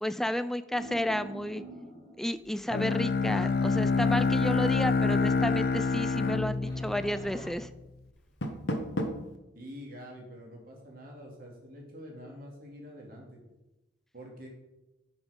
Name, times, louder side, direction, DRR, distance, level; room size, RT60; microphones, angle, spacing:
voice 1, 0.0-1.6 2.2-7.7, equal, ahead, 12 dB, 0.4 m, -32 dB
sound 1, 0.7-2.6 6.7-7.5, equal, 25° left, 3.5 m, -45 dB
Bowed string instrument, 2.7-7.7, left 4 dB, 55° left, 0.5 m, -27 dB
Door, 8.1-9.4, equal, 75° left, 1.2 m, -33 dB
voice 2, 9.5-13.4 14.1-14.5, equal, 50° right, -1 dB, 2.8 m, -46 dB
11.0 x 6.2 x 5.3 m, 0.99 s
head